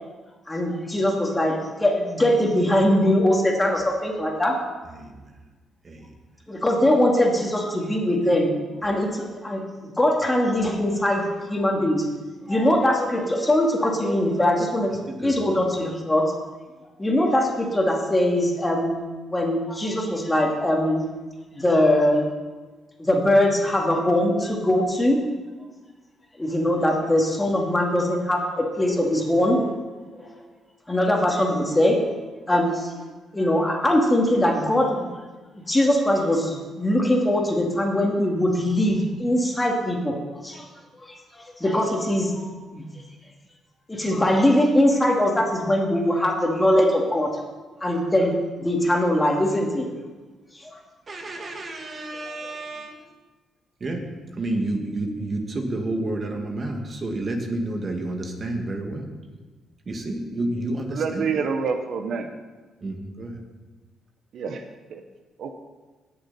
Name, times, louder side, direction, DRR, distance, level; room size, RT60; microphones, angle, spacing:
voice 1, 0.5-4.6 6.5-8.5 8.8-12.0 12.5-14.9 15.2-16.3 17.0-18.9 19.3-21.0 21.5-22.3 23.0-25.2 26.4-29.6 30.1-30.4 30.9-32.0 32.5-33.0 33.3-35.1 35.7-40.2 40.4-40.7 41.0-42.4 42.7-42.9 43.9-47.3 47.8-49.9 50.5-50.8, left 1 dB, 15° left, 0 dB, 2.3 m, -21 dB
voice 2, 4.9-5.3 5.8-6.1 15.1-15.4 51.1-53.1 53.8-59.1 59.9-61.5 62.8-63.4, right 2 dB, 40° right, 3 dB, 1.9 m, -30 dB
voice 3, 60.9-62.3 64.3-64.6 64.9-65.0 65.4-65.5, right 5 dB, 65° right, 6 dB, 0.9 m, -27 dB
18.0 x 6.9 x 4.2 m, 1.3 s
cardioid pair, 90°, 0 cm